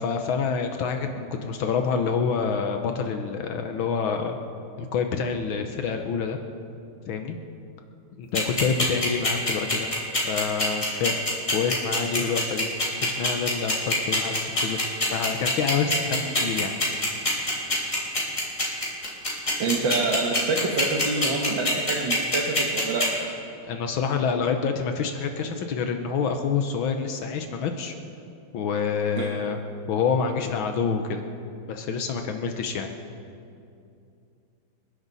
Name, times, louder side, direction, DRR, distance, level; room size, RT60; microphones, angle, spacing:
voice 1, 0.0-4.4 4.8-6.4 7.1-7.3 8.2-9.9 10.3-11.2 11.5-12.7 13.0-14.8 15.0-16.7 23.7-27.9 28.5-29.6 29.9-31.2 31.7-32.9, left 6 dB, 80° left, 5 dB, 1.7 m, -27 dB
sound 1, 8.3-23.0, left 2 dB, 35° left, 4.1 m, -24 dB
voice 2, 19.6-23.2 29.2-29.3, right 3 dB, 65° right, -1 dB, 2.1 m, -27 dB
28.5 x 11.5 x 4.1 m, 2.6 s
omnidirectional pair, 2.2 m